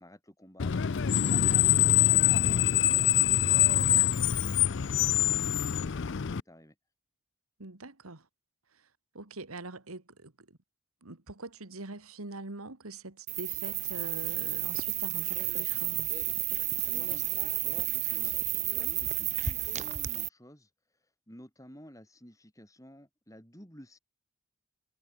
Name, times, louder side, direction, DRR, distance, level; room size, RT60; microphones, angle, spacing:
voice 1, 0.0-4.4 5.1-6.8 16.8-18.3 18.7-20.7 21.3-24.0, equal, 15° left, 7.4 m, -53 dB
Screech, 0.6-6.4, left 12 dB, 55° left, 0.5 m, -24 dB
voice 2, 1.3-1.6 7.6-8.3 8.7-8.9 9.1-10.6 11.0-16.1, right 2 dB, 80° right, 2.2 m, -44 dB
sound 1, 13.3-20.3, right 14 dB, 30° right, 0.6 m, -31 dB
head